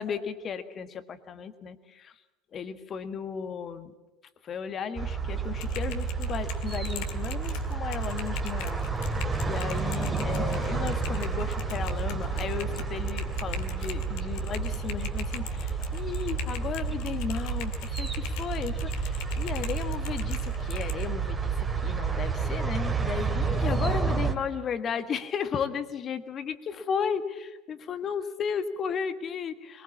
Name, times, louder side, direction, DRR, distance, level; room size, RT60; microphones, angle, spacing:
voice 1, 0.0-2.1 2.5-3.9 4.4-29.8, left 7 dB, 35° left, 11 dB, 1.6 m, -35 dB
sound 1, 5.0-24.3, right 5 dB, 15° right, 2.4 m, -30 dB
Typing, 5.5-21.1, left 10 dB, 55° left, 2.0 m, -40 dB
22.5 x 21.0 x 7.3 m, 1.1 s
figure-of-eight pair, 75°, 0 cm